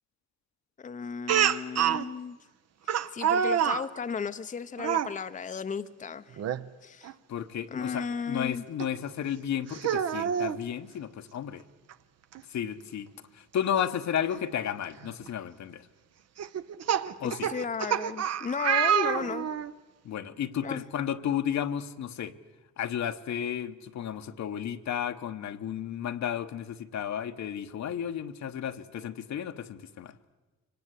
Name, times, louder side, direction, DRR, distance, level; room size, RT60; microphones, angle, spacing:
voice 1, 0.8-2.4 3.1-6.4 6.8-7.1 7.7-8.6 17.2-19.5 20.6-20.8, left 6 dB, 25° left, 9 dB, 0.7 m, -34 dB
Speech, 1.3-2.0 2.9-3.8 4.8-5.1 6.4-6.6 7.0-7.1 8.8-8.9 9.7-10.6 11.9-12.0 12.3-12.4 14.3-14.4 15.0-15.3 16.4-19.7, right 9 dB, 55° right, 0.8 m, -27 dB
voice 2, 7.3-11.6 12.5-15.9 17.2-17.5 20.0-22.3 22.8-30.2, left 9 dB, 65° left, 8 dB, 1.1 m, -33 dB
24.5 x 18.5 x 8.2 m, 1.2 s
cardioid pair, 90°, 30 cm